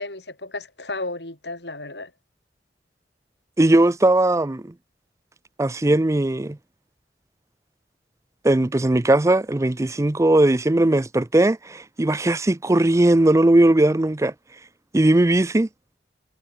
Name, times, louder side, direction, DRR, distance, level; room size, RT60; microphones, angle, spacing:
voice 1, 0.0-2.1, left 2 dB, 70° left, 6.7 m, -33 dB
voice 2, 3.6-4.7 5.6-6.6 8.4-14.3 14.9-15.7, right 1 dB, 15° right, 0.5 m, -18 dB
head